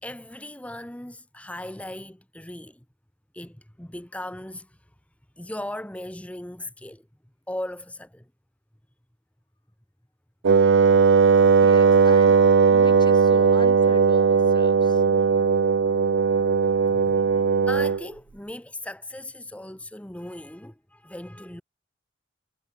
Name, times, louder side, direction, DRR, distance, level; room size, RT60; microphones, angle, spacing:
voice 1, 0.0-2.8 3.3-4.8 5.4-7.1 7.5-8.3 16.8-17.4 17.7-21.6, left 1 dB, 5° left, 1.1 m, -38 dB
Wind instrument woodwind instrument, 10.4-18.1, right 5 dB, 65° right, 0.5 m, -18 dB
voice 2, 11.6-12.4 12.7-15.0, left 2 dB, 25° left, 7.2 m, -41 dB
head